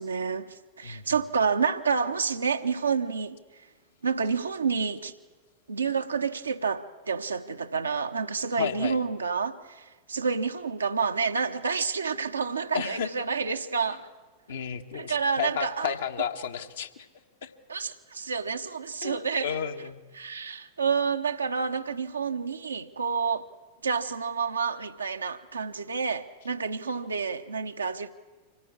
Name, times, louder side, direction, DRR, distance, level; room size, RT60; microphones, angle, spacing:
voice 1, 0.0-3.4 4.0-5.1 5.7-14.1 14.9-15.9 17.7-19.5 20.1-23.5 23.8-28.1, right 5 dB, 75° right, 1.1 m, -29 dB
voice 2, 0.8-1.2 8.6-9.0 12.7-13.1 13.9-14.0 14.5-17.1 17.4-17.5 19.0-20.0, left 8 dB, 65° left, 1.4 m, -32 dB
25.0 x 17.5 x 8.6 m
figure-of-eight pair, 90°, 0 cm